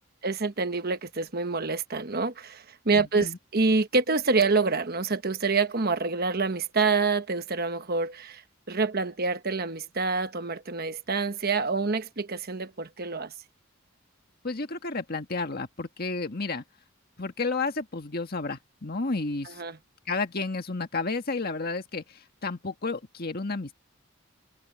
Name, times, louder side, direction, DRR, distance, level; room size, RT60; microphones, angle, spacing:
voice 1, 0.2-8.4 8.7-13.3 19.4-19.8, right 4 dB, 45° right, 1.2 m, -27 dB
voice 2, 2.9-3.4 14.4-16.6 17.2-19.6 20.1-23.7, left 3 dB, 45° left, 1.7 m, -31 dB
head